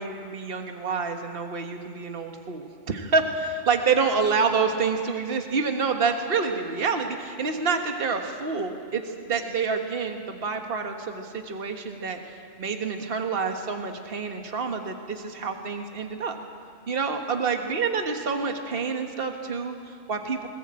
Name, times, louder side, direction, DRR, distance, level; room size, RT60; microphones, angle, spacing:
voice 1, 0.0-12.3 12.6-16.4 16.9-20.5, right 5 dB, 50° right, 5 dB, 1.6 m, -27 dB
21.0 x 20.0 x 8.7 m, 2.4 s
omnidirectional pair, 1.3 m